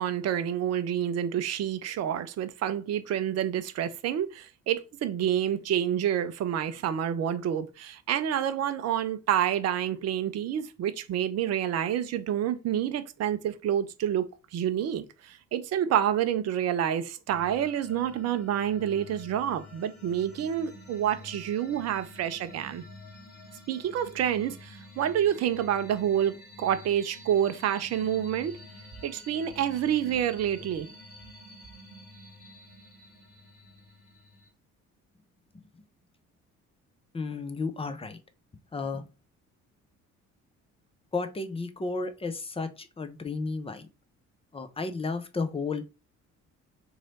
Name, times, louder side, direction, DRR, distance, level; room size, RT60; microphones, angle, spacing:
voice 1, 0.0-14.3 14.5-22.8 23.7-28.6 29.0-30.9, right 10 dB, 40° right, 0.5 m, -28 dB
sound 1, 17.3-34.5, left 1 dB, 85° left, 1.2 m, -49 dB
voice 2, 37.1-38.2 38.7-39.0 41.1-43.9 44.5-45.9, left 3 dB, 15° left, 0.6 m, -33 dB
3.0 x 2.8 x 4.0 m
figure-of-eight pair, 45°, 42 cm